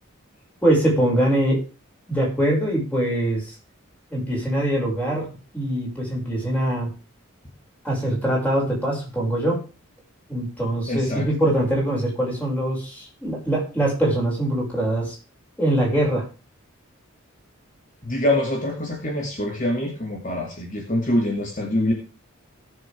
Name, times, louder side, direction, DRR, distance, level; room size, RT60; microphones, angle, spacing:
voice 1, 0.6-1.6 2.1-3.5 4.1-5.3 5.5-6.9 7.8-9.6 10.3-15.2 15.6-16.2, right 1 dB, 10° left, -3 dB, 6.4 m, -23 dB
voice 2, 10.9-11.3 18.0-21.9, left 1 dB, 40° left, 0 dB, 2.5 m, -24 dB
18.5 x 7.3 x 3.6 m, 0.34 s
head